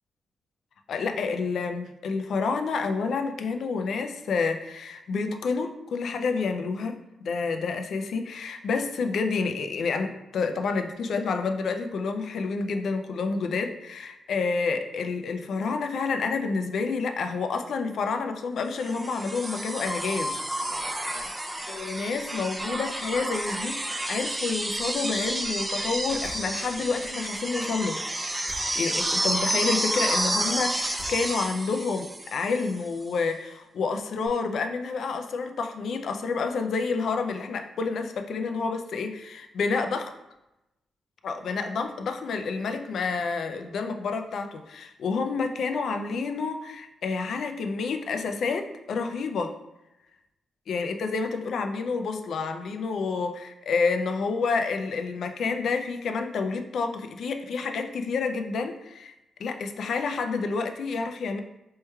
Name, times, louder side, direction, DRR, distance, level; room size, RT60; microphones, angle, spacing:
voice 1, 0.9-20.4 21.7-28.0 28.8-40.1 41.2-49.5 50.7-59.1 59.4-61.4, left 4 dB, 75° left, 6 dB, 0.3 m, -29 dB
sound 1, 18.8-32.8 34.3-34.4, right 1 dB, 20° right, 0.5 m, -30 dB
sound 2, 26.1-26.9 28.3-29.2 30.8-31.7, equal, 10° left, 1.1 m, -46 dB
4.4 x 3.0 x 2.2 m, 0.93 s
cardioid pair, 80°, 0 cm